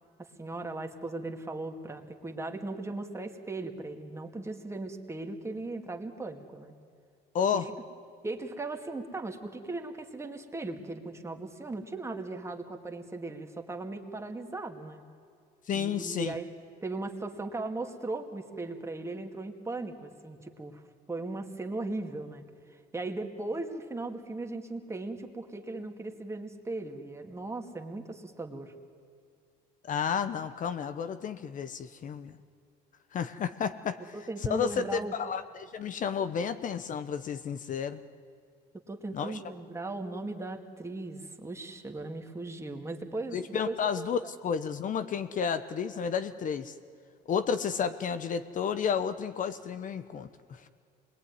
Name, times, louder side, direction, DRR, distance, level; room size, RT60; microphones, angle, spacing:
voice 1, 0.2-6.7 7.5-7.7 8.2-15.0 15.7-16.5 16.8-20.8 21.1-22.4 22.7-28.7 34.1-35.1 38.9-44.1, right 2 dB, 15° right, 3 dB, 2.3 m, -38 dB
voice 2, 7.3-7.7 15.7-16.3 29.8-32.4 33.1-34.1 34.5-38.0 39.1-39.4 43.3-46.7 47.3-50.7, left 7 dB, 50° left, 11 dB, 1.0 m, -31 dB
26.0 x 21.5 x 9.7 m, 2.3 s
cardioid pair, 110°, 17 cm